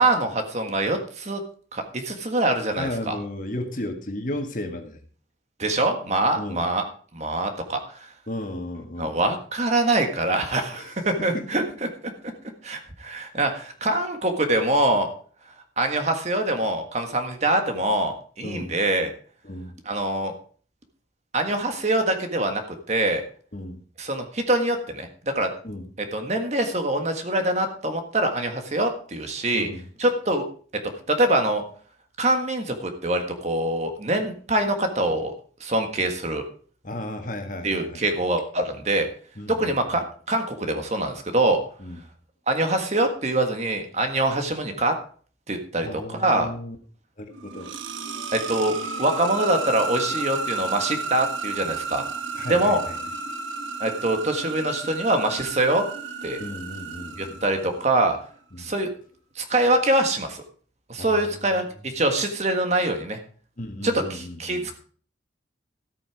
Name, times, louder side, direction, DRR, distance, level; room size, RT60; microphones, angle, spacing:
voice 1, 0.0-1.4 1.7-3.2 5.6-6.8 7.1-8.1 9.0-11.6 12.6-15.1 15.8-19.1 19.8-20.3 21.3-22.6 22.9-23.2 24.0-25.5 26.1-29.7 30.0-30.4 31.1-31.6 32.2-35.3 35.6-36.4 37.6-39.1 39.5-41.6 42.5-44.9 45.5-46.5 48.3-52.1 52.5-52.8 53.8-55.8 56.2-56.4 57.2-58.2 58.6-58.9 59.3-60.4 60.9-63.2 63.8-64.7, right 1 dB, 35° right, 6 dB, 1.6 m, -24 dB
voice 2, 2.8-5.0 6.4-6.7 8.3-9.2 10.7-11.0 11.3-11.5 18.4-18.7 19.4-19.7 23.5-23.8 25.6-25.9 29.5-29.8 36.8-38.0 39.4-39.8 41.8-42.0 45.8-46.8 47.2-47.7 52.4-52.9 56.4-57.5 58.5-58.7 61.0-61.7 63.6-64.7, left 1 dB, 45° left, 5 dB, 1.7 m, -34 dB
sound 1, 47.3-58.0, right 4 dB, 90° right, 1.4 m, -33 dB
13.5 x 8.7 x 4.8 m, 0.44 s
head